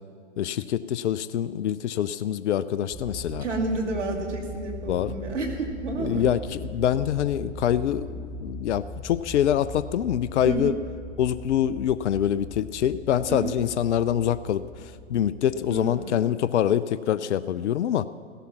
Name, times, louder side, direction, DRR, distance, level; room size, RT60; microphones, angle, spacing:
voice 1, 0.4-3.4 4.9-5.2 6.0-10.7 11.2-18.1, left 10 dB, 70° left, 15 dB, 0.6 m, -25 dB
sound 1, 2.9-16.1, equal, 5° left, 0.5 m, -40 dB
voice 2, 3.4-6.3 10.4-10.7 13.3-13.6 15.7-16.3, right 3 dB, 75° right, 3 dB, 2.7 m, -30 dB
16.0 x 13.0 x 5.9 m, 2.1 s
hypercardioid pair, 120°, 36 cm